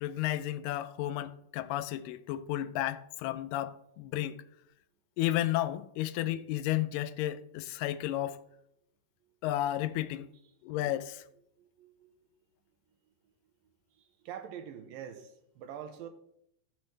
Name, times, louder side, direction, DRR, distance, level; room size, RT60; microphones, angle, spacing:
voice 1, 0.0-4.4 5.2-8.4 9.4-10.3 10.6-11.2, left 14 dB, 80° left, 2.1 m, -32 dB
voice 2, 11.6-12.3 14.2-16.1, right 9 dB, 90° right, 2.7 m, -45 dB
15.0 x 6.1 x 3.2 m
omnidirectional pair, 4.0 m